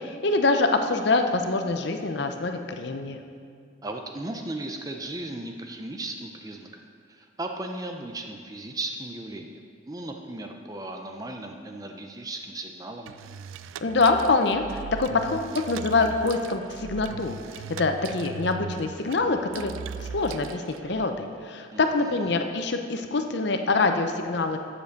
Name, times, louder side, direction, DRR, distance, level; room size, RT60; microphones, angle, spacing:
voice 1, 0.0-3.2 13.8-17.3 17.8-19.7 20.1-24.6, left 3 dB, 55° left, 6 dB, 0.6 m, -25 dB
voice 2, 3.8-6.7 7.1-9.6 9.9-13.2 21.7-22.3, right 2 dB, 20° right, 3 dB, 0.5 m, -36 dB
sound 1, 13.1-21.1, right 7 dB, 80° right, 0.3 m, -40 dB
7.7 x 7.1 x 6.7 m, 2.2 s
head